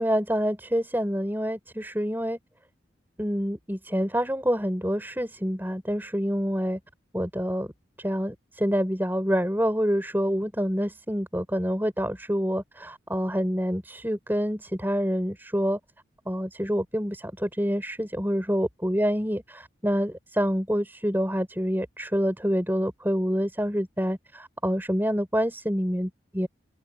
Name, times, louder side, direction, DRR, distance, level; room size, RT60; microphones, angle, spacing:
voice 1, 0.0-2.4 3.2-6.8 7.1-7.7 8.0-15.8 16.3-26.5, equal, 10° right, 4.5 m, -27 dB
open air
head